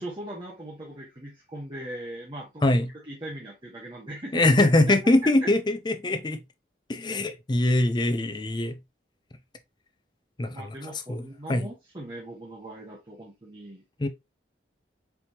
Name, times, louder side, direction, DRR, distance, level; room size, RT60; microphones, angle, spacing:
voice 1, 0.0-2.6 2.9-5.5 10.5-13.8, right 1 dB, 25° right, 0.9 m, -39 dB
voice 2, 4.3-6.4 6.9-8.8 10.4-10.7 11.1-11.7 14.0-14.1, left 2 dB, 25° left, 0.5 m, -23 dB
4.5 x 3.5 x 2.8 m
head